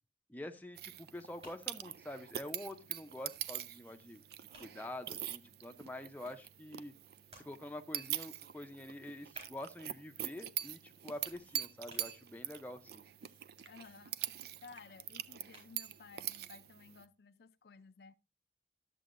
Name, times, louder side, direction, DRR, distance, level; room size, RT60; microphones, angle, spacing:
voice 1, 0.3-4.2 4.6-6.9 7.4-13.0, left 1 dB, 10° left, 0.6 m, -46 dB
sound 1, 0.8-17.1, right 12 dB, 55° right, 0.4 m, -44 dB
sound 2, 8.3-16.5, right 1 dB, 35° right, 4.0 m, -64 dB
sound 3, 11.2-11.5 13.6-14.9, right 6 dB, 85° right, 1.0 m, -61 dB
voice 2, 13.6-18.2, left 5 dB, 60° left, 0.4 m, -56 dB
12.5 x 7.5 x 2.5 m
head